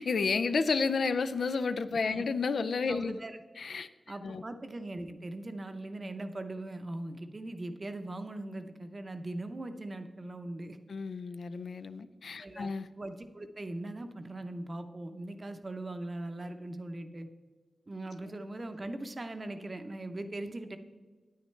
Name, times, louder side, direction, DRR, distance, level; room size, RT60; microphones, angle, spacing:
voice 1, 0.0-3.2 3.6-3.9 4.2-4.4 10.9-12.9, left 4 dB, 80° left, 11 dB, 0.4 m, -31 dB
voice 2, 2.9-3.4 4.1-10.8 12.4-12.7 13.0-17.3 17.9-20.8, right 2 dB, 40° right, 8 dB, 0.7 m, -40 dB
9.4 x 9.2 x 3.2 m, 1.4 s
wide cardioid pair, 75°, 0 cm